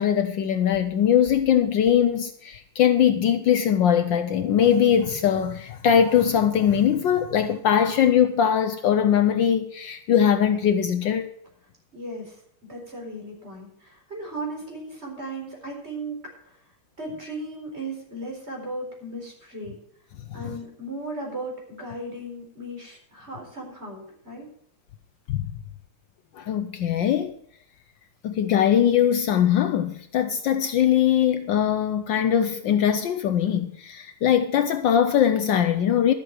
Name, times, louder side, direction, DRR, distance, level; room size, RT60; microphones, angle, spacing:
voice 1, 0.0-11.3 20.3-20.5 25.3-25.5 26.3-27.3 28.2-36.1, left 9 dB, 70° left, 1.3 m, -21 dB
voice 2, 11.9-12.4 12.7-16.2 16.4-16.5 17.0-19.8 20.3-24.5, right 1 dB, 30° right, 4.5 m, -36 dB
12.5 x 7.7 x 6.4 m
omnidirectional pair, 2.3 m